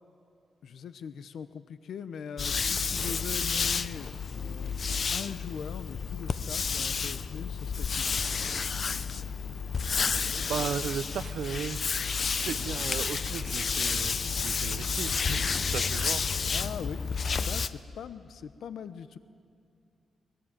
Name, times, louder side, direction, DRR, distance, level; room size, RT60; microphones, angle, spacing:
voice 1, 0.6-4.8 5.1-8.5 16.5-19.2, left 7 dB, 70° left, 12 dB, 0.8 m, -41 dB
sound 1, 2.4-17.7, left 5 dB, 40° left, 0.6 m, -30 dB
voice 2, 10.5-11.8 12.4-16.2, right 8 dB, 75° right, 14 dB, 0.7 m, -36 dB
24.0 x 19.0 x 9.1 m, 2.4 s
wide cardioid pair, 140°, 0 cm